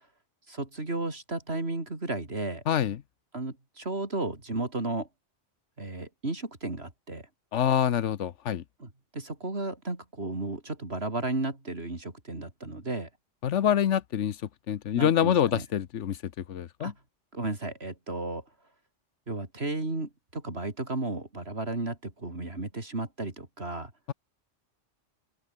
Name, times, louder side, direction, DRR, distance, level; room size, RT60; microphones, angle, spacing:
voice 1, 0.5-2.6 3.3-5.1 5.8-7.2 8.8-13.1 15.0-15.6 16.8-16.9 17.3-18.4 19.3-23.9, right 2 dB, 55° right, 4.1 m, -34 dB
voice 2, 2.7-3.0 7.5-8.6 13.4-14.4 14.7-16.2 16.5-16.9, left 9 dB, 75° left, 1.2 m, -26 dB
omnidirectional pair, 1.2 m